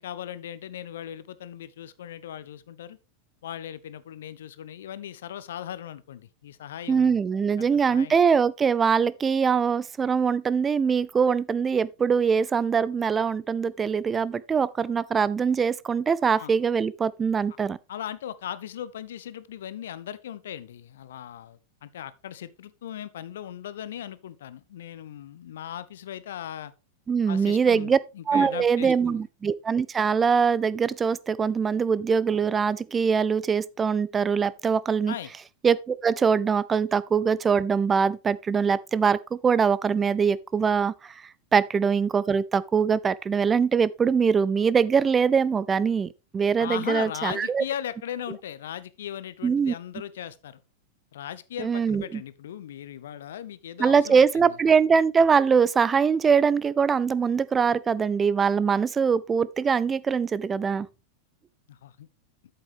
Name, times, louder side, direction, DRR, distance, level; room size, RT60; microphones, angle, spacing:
voice 1, 0.0-3.0 3.4-7.2 7.6-8.2 16.4-16.5 17.9-26.7 27.3-29.2 35.1-35.3 46.6-50.6 51.1-54.5 61.7-62.1, left 10 dB, 60° left, 0.6 m, -38 dB
voice 2, 6.9-17.8 27.1-28.0 28.3-35.1 35.6-47.6 49.4-49.7 51.6-52.2 53.8-60.9, right 6 dB, 20° right, 0.3 m, -23 dB
8.3 x 7.8 x 3.4 m
figure-of-eight pair, 90°, 0 cm